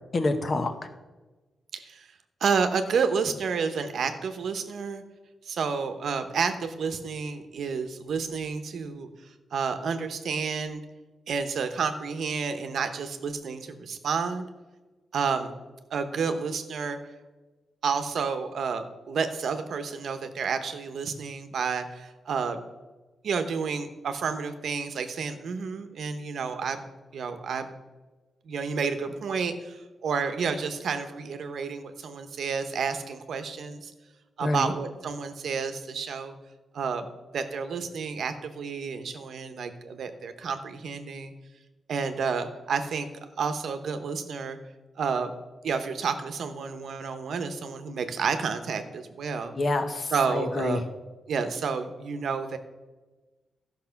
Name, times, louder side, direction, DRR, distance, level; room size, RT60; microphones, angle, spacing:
voice 1, 0.1-0.7 34.4-34.7 49.6-50.8, left 2 dB, 35° left, 8 dB, 0.9 m, -27 dB
voice 2, 1.7-2.1 2.4-5.0 5.5-9.1 9.5-10.8 11.3-14.5 15.1-15.5 15.9-17.0 17.8-22.6 23.2-26.8 27.1-27.7 28.5-33.9 34.4-36.3 36.7-37.1 37.3-41.3 41.9-43.1 43.4-44.6 45.0-45.3 45.6-49.5 50.1-50.8 51.3-52.6, right 5 dB, 65° right, 8 dB, 1.0 m, -30 dB
13.0 x 6.0 x 5.8 m, 1.2 s
wide cardioid pair, 150°, 0 cm